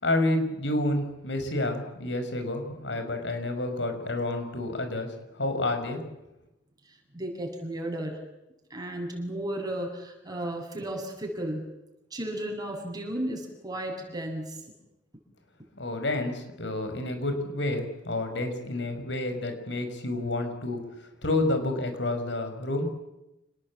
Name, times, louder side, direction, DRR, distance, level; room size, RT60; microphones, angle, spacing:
voice 1, 0.0-6.0 15.8-20.8 21.2-22.9, left 2 dB, 75° left, 7 dB, 5.9 m, -29 dB
voice 2, 7.1-8.2 8.7-11.6 12.1-14.6, right 1 dB, 20° right, 2 dB, 7.9 m, -34 dB
29.0 x 20.0 x 8.8 m, 0.92 s
head